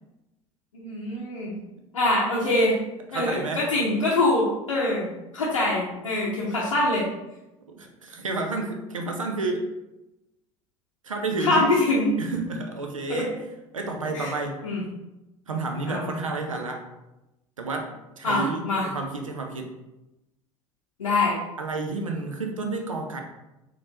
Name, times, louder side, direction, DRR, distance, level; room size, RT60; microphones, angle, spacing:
voice 1, 0.7-1.5 1.9-2.7 3.1-5.1 5.3-7.0 11.4-12.1 13.1-13.2 14.1-14.3 14.6-14.8 15.9-16.0 18.2-18.9 21.0-21.3, left 2 dB, 85° left, -6 dB, 0.7 m, -24 dB
voice 2, 3.1-3.6 7.7-9.6 11.0-11.8 12.2-13.4 13.7-14.7 15.5-16.8 17.6-19.7 21.6-23.2, right 3 dB, 85° right, 3 dB, 0.5 m, -30 dB
4.3 x 2.8 x 2.8 m, 0.97 s
figure-of-eight pair, 65°, 17 cm